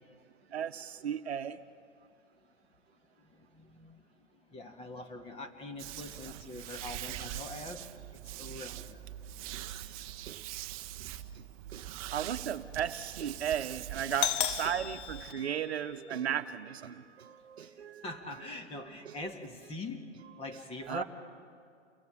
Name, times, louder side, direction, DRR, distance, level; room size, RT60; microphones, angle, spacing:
voice 1, 0.5-1.6 9.5-10.4 11.0-11.1 11.7-18.0 19.0-19.1 20.8-21.0, right 9 dB, 65° right, 10 dB, 1.0 m, -36 dB
voice 2, 3.2-4.0 4.3-9.1 10.0-10.1 17.6-17.7 18.0-20.1 20.4-21.0, left 2 dB, 15° left, 5 dB, 1.8 m, -43 dB
sound 1, 5.8-15.3, right 13 dB, 30° right, 0.8 m, -43 dB
Doorbell, 14.1-16.1, left 10 dB, 45° left, 1.0 m, -35 dB
29.5 x 23.0 x 5.0 m, 2.3 s
hypercardioid pair, 125°, 35 cm